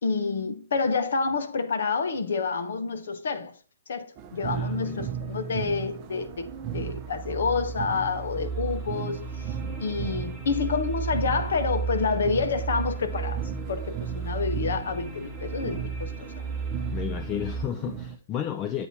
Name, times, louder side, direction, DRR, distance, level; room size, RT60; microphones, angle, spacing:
voice 1, 0.0-3.5 3.9-13.4 13.7-16.3, left 4 dB, 70° left, 1.0 m, -28 dB
sound 1, 4.2-18.2, right 8 dB, 30° right, 0.7 m, -37 dB
voice 2, 4.5-5.1 16.9-18.9, left 10 dB, 25° left, 0.4 m, -32 dB
sound 2, 6.3-17.6, right 5 dB, 5° right, 1.2 m, -34 dB
8.0 x 2.8 x 5.8 m
hypercardioid pair, 140°, 0 cm